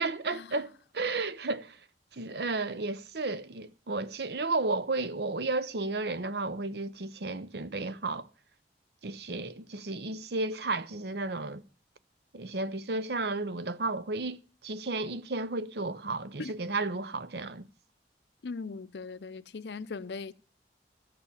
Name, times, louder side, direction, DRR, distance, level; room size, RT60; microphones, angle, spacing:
voice 1, 0.0-1.8 2.1-8.3 9.0-11.6 12.3-14.4 14.6-17.7, right 3 dB, 70° right, 0.8 m, -33 dB
voice 2, 18.4-20.3, left 4 dB, 75° left, 0.5 m, -39 dB
14.0 x 6.8 x 7.1 m
head